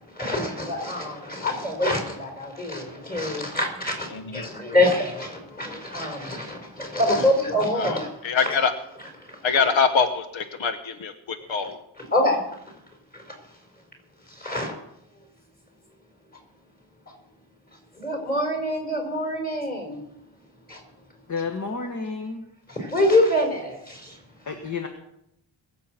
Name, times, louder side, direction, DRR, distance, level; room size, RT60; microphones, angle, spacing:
voice 1, 0.0-8.5 9.2-9.5 12.0-12.4 13.1-13.4 14.3-14.7 17.9-20.0 20.7-20.8 22.7-24.2, left 1 dB, 20° left, 4.5 m, -25 dB
voice 2, 4.1-4.5 7.8-8.0 8.2-8.7 9.4-11.8, left 5 dB, 80° left, 1.1 m, -24 dB
voice 3, 21.3-22.4 24.4-24.9, left 4 dB, 40° left, 1.6 m, -30 dB
22.5 x 7.7 x 6.0 m
wide cardioid pair, 130°, 46 cm